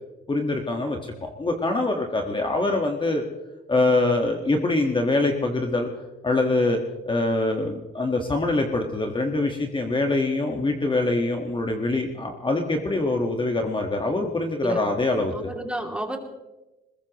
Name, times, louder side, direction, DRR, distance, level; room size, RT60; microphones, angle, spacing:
voice 1, 0.3-3.2 3.7-5.9 6.2-6.8 7.1-15.5, left 2 dB, 25° left, 3 dB, 1.6 m, -24 dB
voice 2, 15.3-16.2, right 1 dB, 5° right, 2 dB, 2.8 m, -31 dB
21.0 x 21.0 x 3.1 m, 1.0 s
cardioid pair, 90°, 20 cm